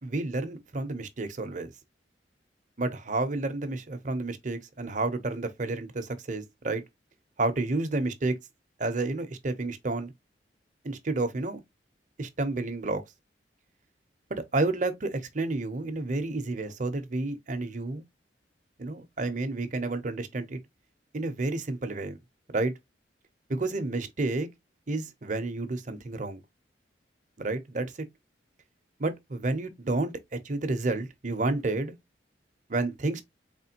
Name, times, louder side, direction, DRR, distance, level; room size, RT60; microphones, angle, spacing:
voice 1, 0.0-1.7 2.8-6.8 7.4-8.4 8.8-10.1 10.8-11.6 12.2-13.0 14.3-18.0 18.8-20.6 21.1-22.2 22.5-22.7 23.5-24.5 24.9-26.4 27.4-27.9 29.0-31.9 32.7-33.2, right 2 dB, 45° right, 0.8 m, -30 dB
4.2 x 3.3 x 2.8 m
head